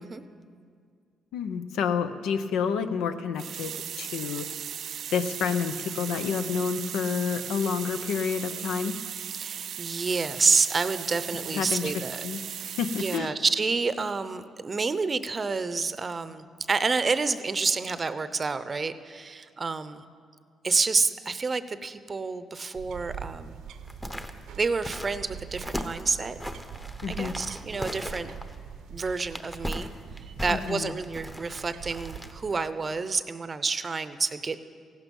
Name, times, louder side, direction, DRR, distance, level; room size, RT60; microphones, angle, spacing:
voice 1, 1.3-4.5 5.1-9.0 11.5-11.9 12.2-13.3 27.0-27.3 30.5-30.9, left 6 dB, 90° left, 10 dB, 0.7 m, -29 dB
sound 1, 3.4-13.2, right 9 dB, 65° right, 0.3 m, -37 dB
voice 2, 9.4-12.2 12.9-20.0 20.6-23.6 24.6-26.4 27.1-28.3 28.9-29.9 30.4-34.6, right 4 dB, 35° right, 13 dB, 0.7 m, -28 dB
sound 2, 22.7-32.5, right 8 dB, 80° right, 0.7 m, -44 dB
sound 3, 23.8-32.6 33.0-33.1, equal, 10° left, 0.9 m, -38 dB
15.5 x 11.5 x 5.4 m, 2.1 s
cardioid pair, 90°, 0 cm